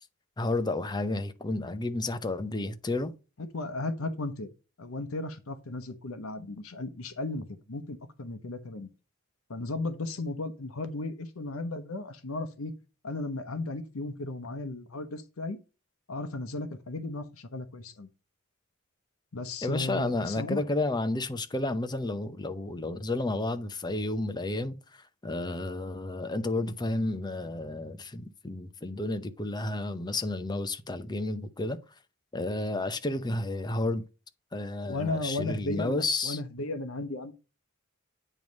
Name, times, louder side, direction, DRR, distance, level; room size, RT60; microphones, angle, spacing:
voice 1, 0.4-3.1 19.6-31.8 32.3-34.0 34.5-36.4, left 2 dB, 20° left, 0.7 m, -31 dB
voice 2, 3.4-4.5 4.8-8.9 9.5-12.7 13.0-15.6 16.1-18.1 19.3-20.7 34.9-37.3, left 2 dB, 75° left, 0.8 m, -35 dB
8.9 x 3.2 x 5.2 m
head